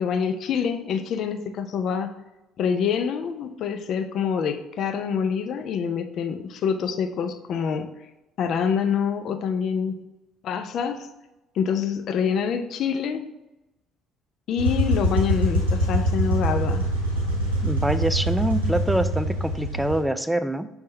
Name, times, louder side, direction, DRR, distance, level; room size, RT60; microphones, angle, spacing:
voice 1, 0.0-2.1 2.6-7.9 8.4-10.0 10.4-11.1 11.6-13.2 14.5-16.9, left 7 dB, 50° left, 8 dB, 0.5 m, -26 dB
sound 1, 14.6-20.0, right 1 dB, 80° right, 1.4 m, -24 dB
voice 2, 17.6-20.7, right 1 dB, 5° right, 12 dB, 0.4 m, -25 dB
6.4 x 3.5 x 4.2 m, 0.96 s
figure-of-eight pair, 50°, 0 cm